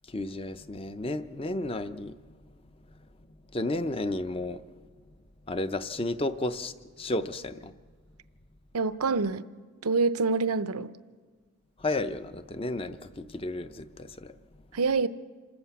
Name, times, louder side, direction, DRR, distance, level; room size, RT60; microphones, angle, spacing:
voice 1, 0.1-2.1 3.5-4.6 5.5-7.7 11.8-14.3, left 2 dB, 25° left, 11 dB, 0.6 m, -32 dB
voice 2, 8.7-9.4 9.8-10.9 14.7-15.1, right 4 dB, 80° right, 14 dB, 0.7 m, -26 dB
27.0 x 13.0 x 8.2 m, 1.4 s
head